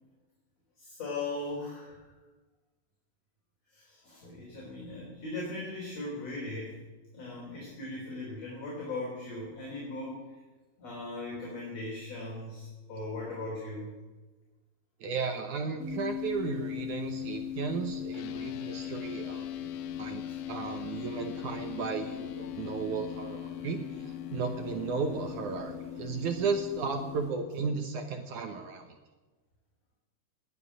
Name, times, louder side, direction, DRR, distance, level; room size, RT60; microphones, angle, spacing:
voice 1, 0.8-2.0 3.7-6.8 7.1-10.3 10.8-13.9 20.2-20.4, left 2 dB, 40° left, -4 dB, 4.6 m, -39 dB
voice 2, 15.0-20.2 20.5-28.9, right 5 dB, 65° right, 5 dB, 2.0 m, -34 dB
sound 1, 15.8-27.3, left 10 dB, 20° left, 2.7 m, -39 dB
sound 2, 18.1-27.5, left 9 dB, 85° left, 2.9 m, -46 dB
20.5 x 7.4 x 9.6 m, 1.2 s
omnidirectional pair, 4.8 m